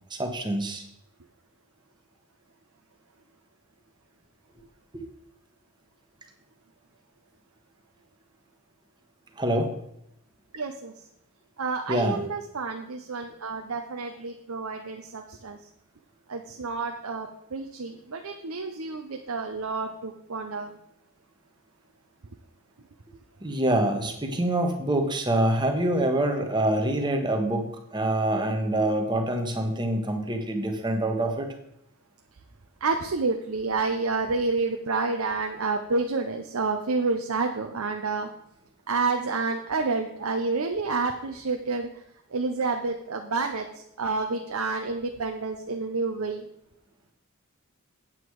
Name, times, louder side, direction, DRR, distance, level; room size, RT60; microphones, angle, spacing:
voice 1, 0.1-0.8 4.9-5.0 9.4-9.8 11.9-12.2 23.4-31.5, right 1 dB, 20° right, 4 dB, 1.2 m, -26 dB
voice 2, 10.5-10.9 11.6-15.6 16.3-20.8 32.8-38.3 38.9-41.9 42.3-43.7 44.0-46.5, right 3 dB, 75° right, 4 dB, 0.8 m, -29 dB
8.9 x 7.9 x 4.8 m, 0.77 s
head